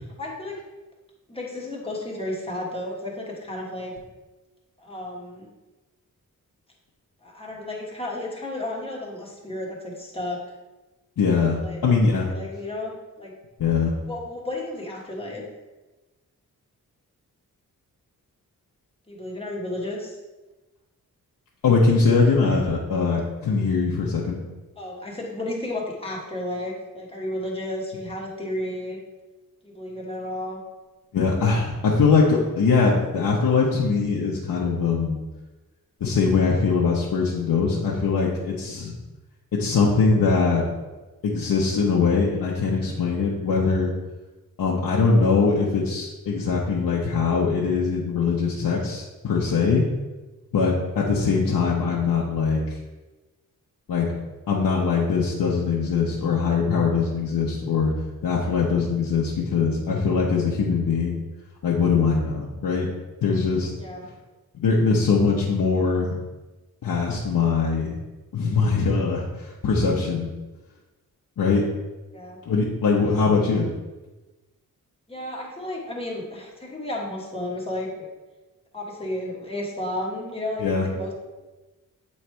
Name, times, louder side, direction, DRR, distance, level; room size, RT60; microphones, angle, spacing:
voice 1, 0.2-0.6 1.3-3.9 4.8-5.5 7.2-10.4 11.6-11.8 12.2-13.3 14.1-15.4 19.1-20.2 24.8-29.0 29.6-30.6 63.7-64.1 72.1-72.4 73.0-73.2 75.1-78.1 78.7-81.1, left 1 dB, 15° left, -3 dB, 1.3 m, -32 dB
voice 2, 11.2-12.3 13.6-13.9 21.6-24.4 31.1-35.2 36.0-38.9 39.5-40.7 41.2-43.9 44.6-49.8 50.5-52.6 53.9-54.1 54.5-57.9 58.2-61.2 61.6-62.9 63.2-63.7 64.6-66.1 66.8-68.0 68.3-70.3 71.4-71.6 72.4-73.7 80.6-80.8, left 4 dB, 85° left, -4 dB, 0.9 m, -22 dB
8.1 x 3.2 x 4.5 m, 1.1 s
wide cardioid pair, 145°, 34 cm